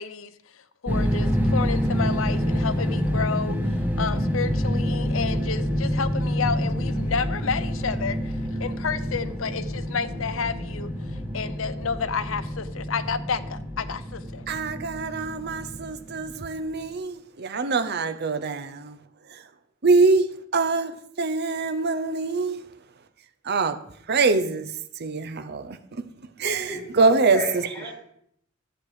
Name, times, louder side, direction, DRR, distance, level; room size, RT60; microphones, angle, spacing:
voice 1, 0.0-3.6 4.0-8.3 8.6-14.5, left 5 dB, 80° left, 14 dB, 0.7 m, -30 dB
sound 1, 0.9-16.7, equal, 10° right, 1.3 m, -27 dB
voice 2, 14.5-19.0 19.8-20.3 20.5-22.6 23.4-23.8 24.1-24.7 25.0-25.8 26.4-27.4, right 4 dB, 55° right, 9 dB, 0.8 m, -24 dB
voice 3, 26.5-27.9, left 1 dB, 10° left, -4 dB, 2.3 m, -32 dB
11.5 x 8.1 x 5.0 m, 0.70 s
head